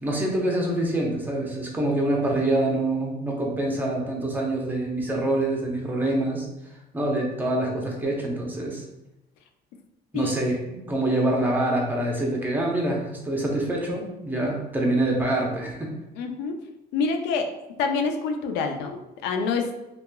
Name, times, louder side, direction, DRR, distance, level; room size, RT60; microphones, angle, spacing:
voice 1, 0.0-6.5 6.9-8.8 10.1-15.9, right 1 dB, 10° right, -1 dB, 0.6 m, -25 dB
voice 2, 16.2-16.6 16.9-17.5 17.8-19.7, left 4 dB, 90° left, 5 dB, 0.4 m, -26 dB
2.8 x 2.3 x 2.2 m, 0.92 s
cardioid pair, 110°, 17 cm